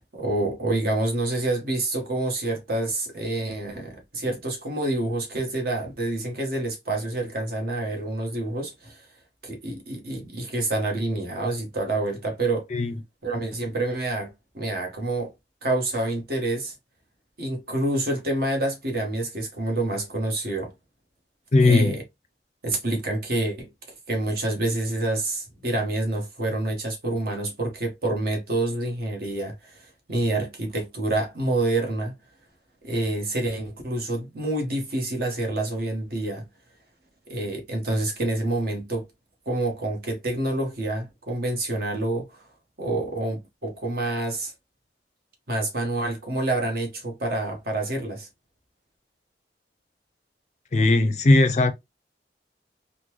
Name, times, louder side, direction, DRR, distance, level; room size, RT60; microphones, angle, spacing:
voice 1, 0.1-9.0 9.4-12.7 13.2-14.3 14.5-15.3 15.6-16.7 17.4-20.7 21.6-22.0 22.6-23.7 24.1-29.5 30.1-32.1 32.8-36.4 37.3-39.1 39.5-42.4 42.8-44.5 45.5-48.3, right 2 dB, 55° right, 1.2 m, -27 dB
voice 2, 21.5-22.0 50.7-51.7, left 2 dB, 40° left, 0.4 m, -18 dB
3.8 x 2.2 x 3.0 m
head